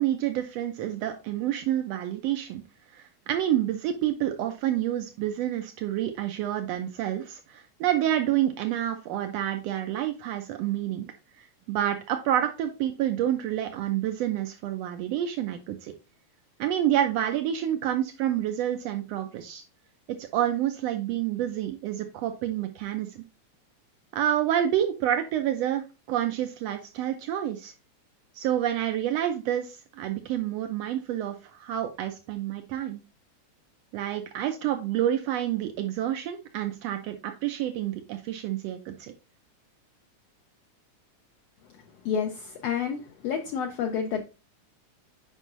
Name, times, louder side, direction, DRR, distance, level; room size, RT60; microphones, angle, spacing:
voice 1, 0.0-2.6 2.9-11.1 11.4-15.9 16.6-19.6 20.1-23.2 24.1-27.7 28.3-33.0 33.9-39.1, right 11 dB, 90° right, 6 dB, 1.4 m, -28 dB
voice 2, 42.0-44.2, left 7 dB, 85° left, 4 dB, 1.4 m, -29 dB
7.6 x 5.4 x 2.5 m, 0.29 s
omnidirectional pair, 3.7 m